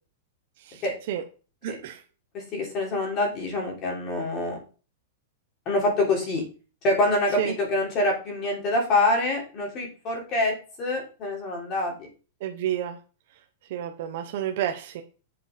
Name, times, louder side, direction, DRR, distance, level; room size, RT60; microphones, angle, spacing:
voice 1, 0.6-1.2 1.6-2.0 7.4-7.5 12.4-13.0 13.7-15.0, right 10 dB, 45° right, 5 dB, 0.8 m, -30 dB
voice 2, 2.3-4.6 5.6-6.4 6.8-12.1, left 2 dB, 25° left, 0 dB, 3.2 m, -26 dB
7.8 x 5.2 x 5.1 m, 0.35 s
supercardioid pair, 175°, 0 cm